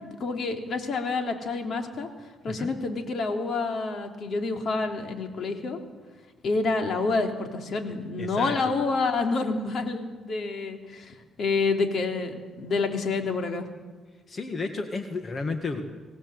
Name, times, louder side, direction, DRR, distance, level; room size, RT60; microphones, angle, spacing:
voice 1, 0.0-2.1 2.4-5.8 6.4-13.7, left 3 dB, 55° left, 4 dB, 3.3 m, -28 dB
voice 2, 8.2-8.6 14.3-15.8, left 3 dB, 40° left, 6 dB, 1.9 m, -32 dB
25.0 x 18.0 x 8.0 m, 1.4 s
cardioid pair, 90°, 0 cm